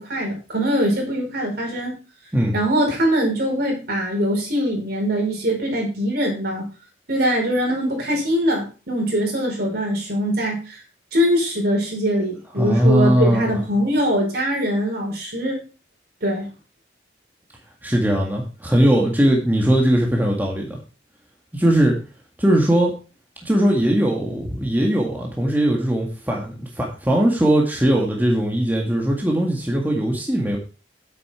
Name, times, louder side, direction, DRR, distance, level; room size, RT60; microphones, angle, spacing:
voice 1, 0.0-1.9 2.5-6.7 7.1-10.8 11.1-15.6 16.2-16.5, equal, 55° right, 0 dB, 5.3 m, -22 dB
voice 2, 12.6-13.6 17.8-20.8 21.5-22.0 22.4-22.9 23.4-30.6, right 1 dB, 10° right, -1 dB, 1.8 m, -19 dB
9.9 x 8.3 x 4.4 m, 0.34 s
head